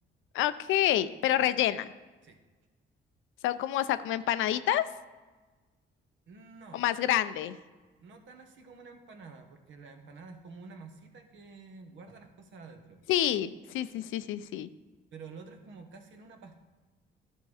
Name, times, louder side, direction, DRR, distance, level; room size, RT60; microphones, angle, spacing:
voice 1, 0.3-1.9 3.4-4.8 6.7-7.6 13.1-14.7, left 12 dB, 85° left, 13 dB, 0.5 m, -28 dB
voice 2, 6.3-6.8 8.0-13.0 15.1-16.6, right 4 dB, 70° right, 5 dB, 1.2 m, -49 dB
11.5 x 4.6 x 4.9 m, 1.3 s
cardioid pair, 90°, 20 cm